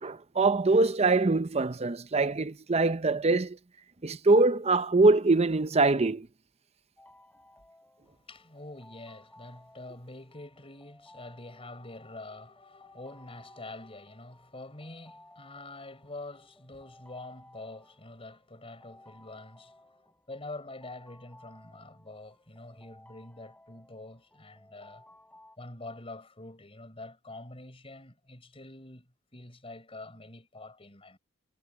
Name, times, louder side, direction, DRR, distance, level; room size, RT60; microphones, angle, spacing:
voice 1, 0.0-3.6 4.0-6.3, right 3 dB, 30° right, 0.7 m, -23 dB
sound 1, 7.0-25.6, left 1 dB, 5° left, 5.4 m, -58 dB
voice 2, 8.1-25.2 25.6-31.2, left 2 dB, 25° left, 5.1 m, -46 dB
head